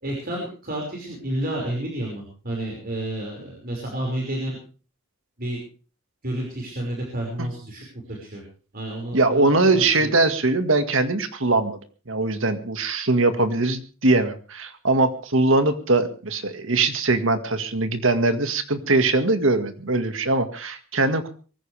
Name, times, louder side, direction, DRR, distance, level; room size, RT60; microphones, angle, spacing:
voice 1, 0.0-4.6 5.4-5.6 6.2-8.4 8.7-10.1, right 1 dB, 45° right, -1 dB, 5.6 m, -30 dB
voice 2, 9.1-11.8 12.1-21.3, right 2 dB, 65° right, 8 dB, 1.9 m, -21 dB
23.0 x 15.0 x 3.5 m, 0.38 s
head